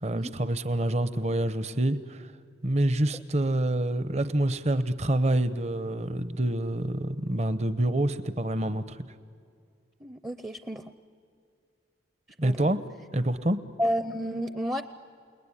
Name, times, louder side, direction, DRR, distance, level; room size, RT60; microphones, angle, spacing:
voice 1, 0.0-2.3 2.6-9.0 12.4-12.8 13.1-13.6, right 1 dB, 35° right, 12 dB, 0.8 m, -27 dB
voice 2, 10.0-10.8 12.4-12.6 13.8-14.8, equal, 15° right, 10 dB, 0.6 m, -30 dB
28.5 x 20.0 x 9.9 m, 2.4 s
head